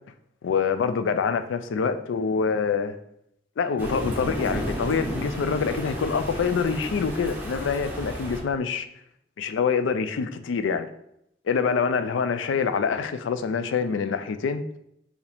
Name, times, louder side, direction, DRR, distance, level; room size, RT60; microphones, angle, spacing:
voice 1, 0.4-3.0 3.6-8.9 9.4-10.9 11.5-14.6, left 5 dB, 90° left, 0.4 m, -25 dB
Thunder, 3.8-8.4, equal, 10° right, 0.8 m, -32 dB
4.7 x 2.7 x 3.4 m
head